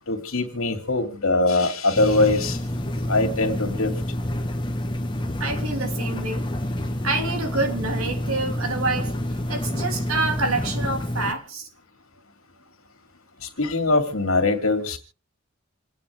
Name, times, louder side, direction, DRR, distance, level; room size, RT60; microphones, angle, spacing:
voice 1, 0.1-2.6 3.1-3.9 13.6-15.0, left 2 dB, 80° left, 5 dB, 2.6 m, -22 dB
sound 1, 2.0-11.3, left 1 dB, 20° left, 1.2 m, -28 dB
voice 2, 5.4-6.4 7.0-11.7, right 3 dB, 80° right, 4 dB, 3.1 m, -27 dB
28.0 x 9.5 x 3.5 m, 0.37 s
head